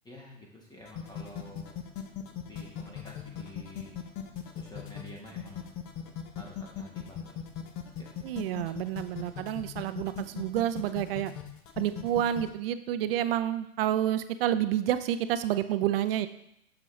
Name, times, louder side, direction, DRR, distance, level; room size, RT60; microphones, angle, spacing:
voice 1, 0.0-1.7 2.5-3.9 4.5-5.7 6.4-7.3 7.9-8.1, left 1 dB, 10° left, -2 dB, 1.1 m, -49 dB
sound 1, 0.8-12.5, left 9 dB, 30° left, 0.8 m, -39 dB
voice 2, 8.2-11.3 11.8-16.3, right 11 dB, 45° right, 12 dB, 0.5 m, -29 dB
6.9 x 5.3 x 3.2 m, 0.76 s
hypercardioid pair, 120°, 40 cm